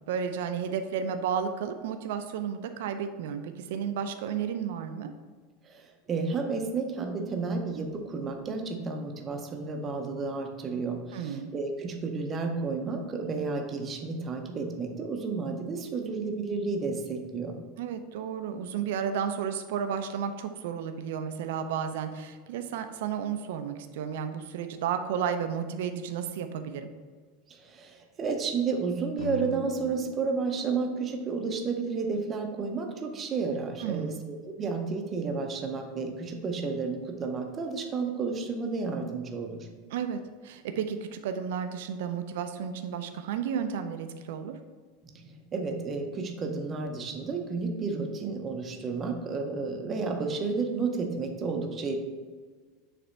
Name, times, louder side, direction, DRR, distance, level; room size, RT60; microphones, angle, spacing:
voice 1, 0.0-5.1 11.1-11.5 17.8-26.9 33.8-34.2 39.9-44.5, right 7 dB, 70° right, 8 dB, 0.4 m, -32 dB
voice 2, 5.6-17.6 27.5-39.7 45.1-52.0, right 4 dB, 20° right, 4 dB, 0.6 m, -32 dB
sound 1, 29.2-33.3, left 4 dB, 75° left, 0.4 m, -42 dB
6.6 x 3.3 x 4.3 m, 1.5 s
supercardioid pair, 175°, 0 cm